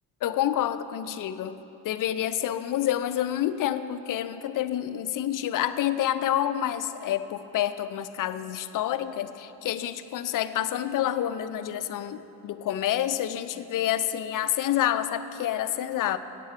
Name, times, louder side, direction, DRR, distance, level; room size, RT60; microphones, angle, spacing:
voice 1, 0.2-1.6 1.8-16.2, left 11 dB, 55° left, 12 dB, 0.5 m, -28 dB
8.2 x 7.7 x 6.6 m, 3.0 s
cardioid pair, 80°, 39 cm